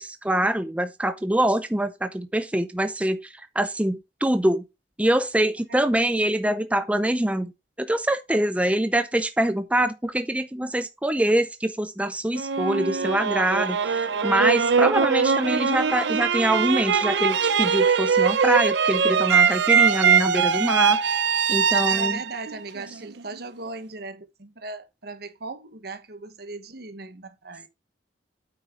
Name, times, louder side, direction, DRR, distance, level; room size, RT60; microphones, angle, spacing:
voice 1, 0.0-4.6 5.0-7.5 7.9-21.1 21.5-22.2, right 1 dB, 10° right, 0.6 m, -24 dB
sound 1, 12.4-23.4, right 6 dB, 80° right, 0.7 m, -22 dB
voice 2, 21.9-27.7, right 3 dB, 60° right, 1.3 m, -38 dB
9.0 x 6.7 x 3.8 m
head